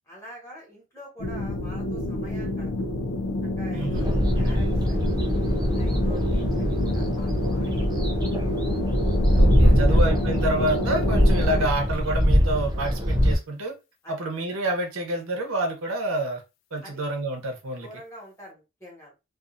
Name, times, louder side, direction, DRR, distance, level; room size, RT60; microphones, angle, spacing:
voice 1, 0.1-2.9 3.6-5.1 5.7-8.1 9.3-10.0 14.0-14.1 16.8-17.0 17.8-19.2, left 1 dB, 15° left, -4 dB, 1.3 m, -45 dB
sound 1, 1.2-11.7, left 1 dB, 70° left, 0.4 m, -28 dB
voice 2, 3.7-4.1 9.3-13.7 14.1-16.4 16.7-17.9, right 1 dB, 85° right, 3 dB, 0.9 m, -28 dB
sound 2, 3.9-13.4, equal, 20° right, 0.4 m, -22 dB
2.5 x 2.5 x 2.5 m, 0.26 s
head